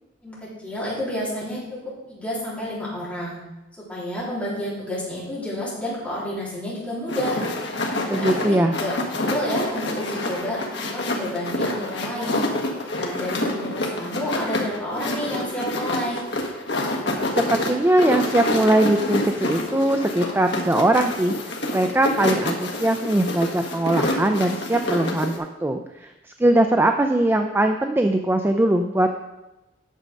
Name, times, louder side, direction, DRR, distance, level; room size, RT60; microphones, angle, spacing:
voice 1, 0.2-1.8 2.1-3.4 3.8-7.4 8.0-9.0 9.2-12.4 12.9-16.2, equal, 10° left, -8 dB, 3.5 m, -30 dB
sound 1, 7.1-25.4, left 1 dB, 65° left, 1.4 m, -27 dB
voice 2, 8.1-8.7 17.3-21.3 21.7-26.1 26.4-29.1, right 1 dB, 10° right, 5 dB, 0.4 m, -21 dB
9.0 x 6.4 x 5.2 m, 1.0 s
head